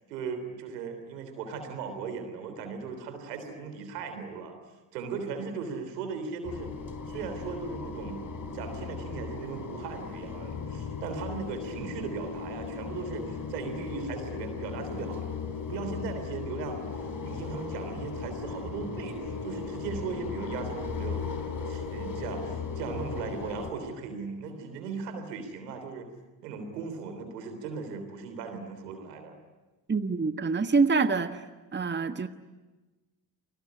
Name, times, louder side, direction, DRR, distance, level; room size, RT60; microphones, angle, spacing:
voice 1, 0.1-4.5 4.9-6.7 7.1-8.2 8.5-26.1 26.4-29.4, right 5 dB, 85° right, 7 dB, 3.5 m, -38 dB
sound 1, 6.4-23.7, left 5 dB, 40° left, 4.0 m, -37 dB
voice 2, 29.9-31.4 31.7-32.3, right 4 dB, 20° right, 9 dB, 1.5 m, -25 dB
29.5 x 20.5 x 9.7 m, 1.2 s
hypercardioid pair, 45°, 47 cm